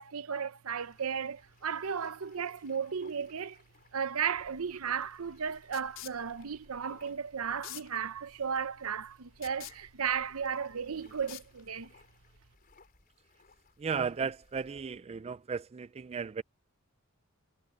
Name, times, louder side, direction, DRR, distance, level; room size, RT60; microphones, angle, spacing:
voice 1, 0.0-3.6 3.9-11.9, right 7 dB, 70° right, 0.7 m, -35 dB
sound 1, 0.7-15.0, left 4 dB, 45° left, 3.9 m, -63 dB
sound 2, 4.4-12.0, left 11 dB, 65° left, 4.4 m, -51 dB
voice 2, 13.8-16.4, right 6 dB, 30° right, 0.4 m, -35 dB
head